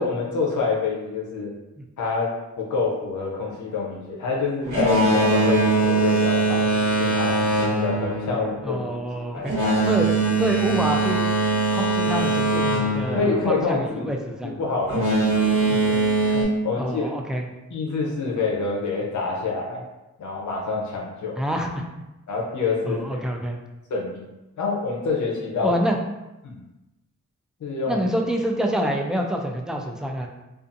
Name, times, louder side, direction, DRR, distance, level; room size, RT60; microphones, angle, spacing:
voice 1, 0.0-1.5 2.0-2.3 2.6-6.7 7.0-7.4 7.8-8.9 9.3-9.8 13.1-14.1 14.4-15.4 16.2-17.1 17.7-19.8 20.2-21.4 22.3-23.2 23.9-24.2 24.6-25.7 26.4-26.6 27.6-28.0, left 4 dB, 85° left, -2 dB, 0.6 m, -27 dB
Boat Water vehicle, 4.6-14.1 14.8-16.4, right 3 dB, 85° right, 0.9 m, -22 dB
voice 2, 8.6-9.5 9.8-10.1 10.4-11.3 11.7-14.5 15.7-15.8 16.8-17.5 21.4-21.8 22.9-23.6 25.6-26.0 27.9-30.3, equal, ahead, 1 dB, 0.4 m, -27 dB
2.5 x 2.3 x 2.5 m, 1.0 s
cardioid pair, 55°, 29 cm